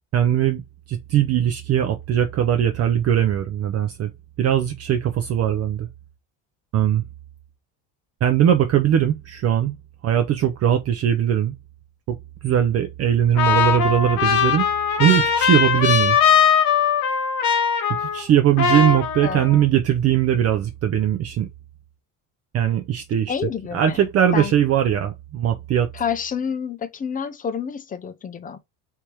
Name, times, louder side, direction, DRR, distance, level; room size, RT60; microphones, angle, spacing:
voice 1, 0.1-0.6 0.9-4.1 4.4-5.9 6.7-7.0 8.2-9.8 10.0-11.5 12.1-12.2 12.4-14.7 15.0-16.2 18.0-21.5 22.5-23.3 23.7-25.9, right 10 dB, 40° right, 0.6 m, -20 dB
Trumpet, 13.4-18.3 18.6-19.6, left 7 dB, 60° left, 1.1 m, -20 dB
voice 2, 23.3-24.1 24.3-24.5 25.9-28.6, left 7 dB, 20° left, 0.6 m, -28 dB
3.4 x 3.0 x 4.5 m
cardioid pair, 130°, 40 cm